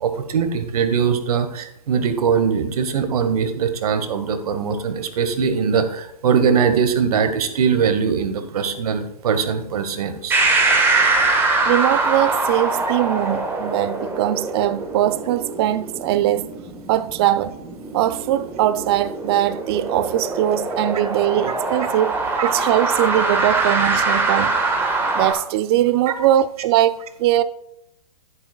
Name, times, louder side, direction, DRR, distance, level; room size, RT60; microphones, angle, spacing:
voice 1, 0.0-10.4 22.4-22.5 26.1-26.2, right 6 dB, 65° right, 1.5 m, -21 dB
sound 1, 10.3-25.3, right 3 dB, 10° right, 1.5 m, -23 dB
voice 2, 11.7-16.5 16.9-17.5 17.9-24.5 25.2-27.4, right 13 dB, 40° right, 0.5 m, -21 dB
11.0 x 9.8 x 2.4 m
hypercardioid pair, 135°, 21 cm